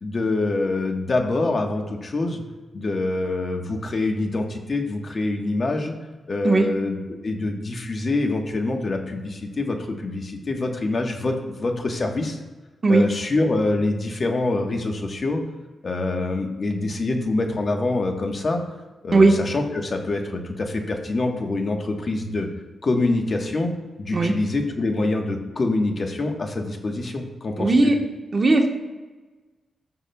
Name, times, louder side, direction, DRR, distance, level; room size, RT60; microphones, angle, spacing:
voice 1, 0.0-2.4 2.7-6.0 6.3-12.4 12.9-15.4 15.8-18.6 19.0-22.5 22.8-23.7 24.0-27.9, left 2 dB, 40° left, 3 dB, 1.2 m, -25 dB
voice 2, 27.6-28.0 28.3-28.7, right 3 dB, 35° right, 2 dB, 1.2 m, -17 dB
15.5 x 5.8 x 2.3 m, 1.2 s
wide cardioid pair, 115°, 0 cm